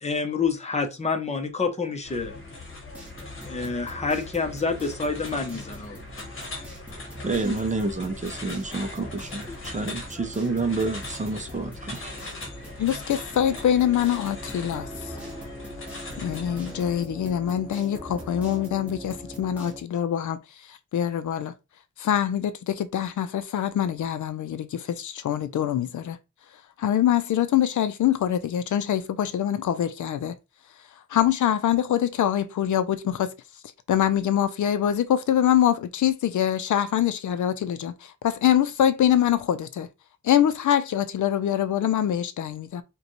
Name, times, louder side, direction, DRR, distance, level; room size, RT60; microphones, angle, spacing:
voice 1, 0.0-2.4 3.5-5.9, left 4 dB, 20° left, 0.7 m, -28 dB
sound 1, 2.0-17.0, left 2 dB, 45° left, 1.1 m, -40 dB
sound 2, 2.9-19.8, equal, 5° right, 1.5 m, -42 dB
voice 2, 7.2-12.1, right 3 dB, 25° right, 0.5 m, -29 dB
voice 3, 12.8-14.9 16.2-20.4 20.7-21.5 22.0-26.2 26.8-30.4 31.1-33.3 33.9-39.9 40.2-42.8, left 10 dB, 75° left, 0.5 m, -24 dB
4.9 x 2.3 x 3.0 m
wide cardioid pair, 180°, 30 cm